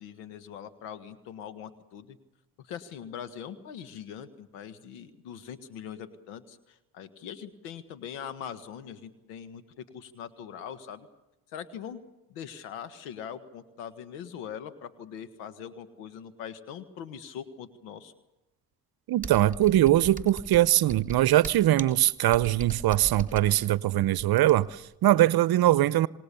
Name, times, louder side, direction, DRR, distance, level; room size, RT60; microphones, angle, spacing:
voice 1, 0.0-2.2 2.6-11.1 11.5-12.0 12.3-18.1, left 8 dB, 90° left, 1.7 m, -42 dB
voice 2, 19.1-26.1, right 14 dB, 60° right, 0.8 m, -22 dB
Computer keyboard, 19.2-24.8, right 3 dB, 20° right, 3.6 m, -40 dB
27.0 x 19.5 x 7.0 m
supercardioid pair, 60°, 42 cm